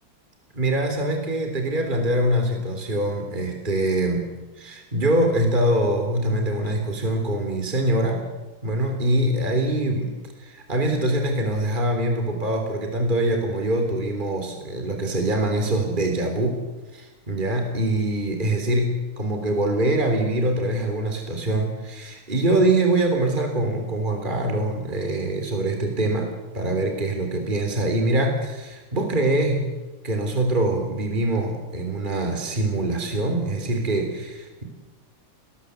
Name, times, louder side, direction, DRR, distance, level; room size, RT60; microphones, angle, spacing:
voice 1, 0.5-4.3 4.6-8.3 8.6-16.7 16.9-29.7 30.0-34.6, right 1 dB, 20° right, 3 dB, 3.8 m, -24 dB
29.5 x 20.0 x 8.1 m, 1.2 s
omnidirectional pair, 2.3 m